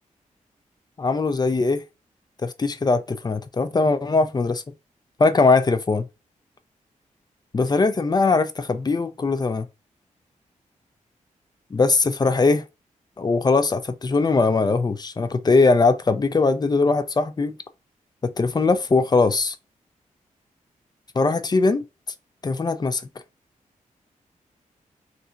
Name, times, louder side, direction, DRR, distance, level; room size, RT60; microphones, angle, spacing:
voice 1, 1.0-1.8 2.4-4.6 5.2-6.1 7.5-9.7 11.7-12.6 13.2-17.6 18.2-19.6 21.2-21.8 22.4-23.0, left 3 dB, 30° left, 0.4 m, -20 dB
3.3 x 2.7 x 2.5 m
cardioid pair, 75°, 14 cm